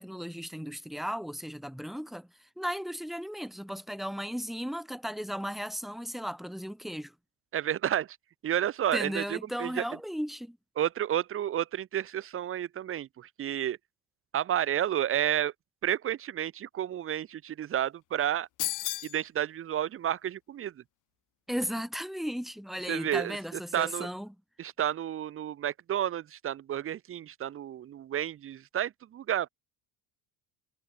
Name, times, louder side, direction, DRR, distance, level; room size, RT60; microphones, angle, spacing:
voice 1, 0.0-2.3 2.6-7.1 8.9-10.6 21.5-24.3, equal, ahead, 1.6 m, -35 dB
voice 2, 7.5-8.2 8.4-9.8 10.8-13.8 14.3-15.5 15.8-18.5 19.0-20.8 22.9-23.4 23.7-24.1 24.6-29.5, right 11 dB, 30° right, 0.7 m, -31 dB
sound 1, 18.6-19.2, left 15 dB, 45° left, 0.9 m, -32 dB
cardioid pair, 140°, 44 cm